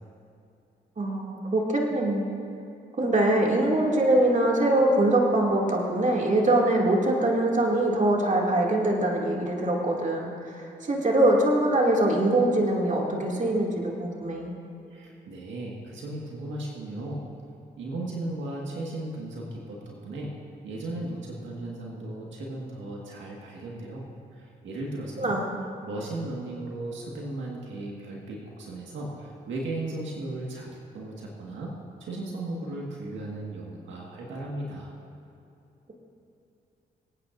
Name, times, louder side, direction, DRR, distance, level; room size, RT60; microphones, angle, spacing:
voice 1, 1.0-2.4 3.0-10.6 10.9-14.5 25.2-25.5, right 1 dB, 40° right, -2 dB, 2.5 m, -23 dB
voice 2, 14.9-17.2 17.8-20.3 20.6-24.1 24.3-25.4 25.8-31.7 32.0-35.0, right 2 dB, 80° right, -2 dB, 1.8 m, -36 dB
24.5 x 9.2 x 2.6 m, 2.8 s
supercardioid pair, 60°, 19 cm